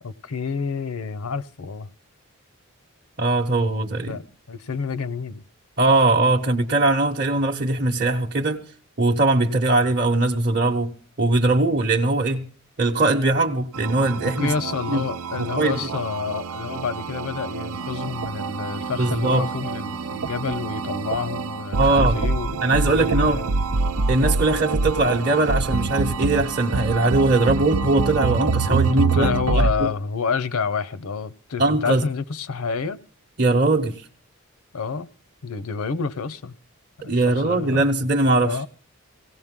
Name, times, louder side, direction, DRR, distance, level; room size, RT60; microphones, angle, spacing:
voice 1, 0.0-1.9 4.1-5.4 14.4-23.5 28.7-33.0 34.7-35.1 35.4-36.6 37.0-37.9 38.4-38.7, left 5 dB, 75° left, 0.6 m, -29 dB
voice 2, 3.2-4.2 5.8-8.6 9.0-10.9 11.2-12.5 12.8-14.5 14.9-15.0 15.4-15.9 19.0-19.5 21.8-22.2 22.6-23.4 24.1-29.9 31.6-32.0 33.4-34.0 37.1-38.6, right 2 dB, 40° right, 0.8 m, -20 dB
sound 1, 13.7-29.7, right 4 dB, 80° right, 0.6 m, -26 dB
17.5 x 17.0 x 3.7 m
head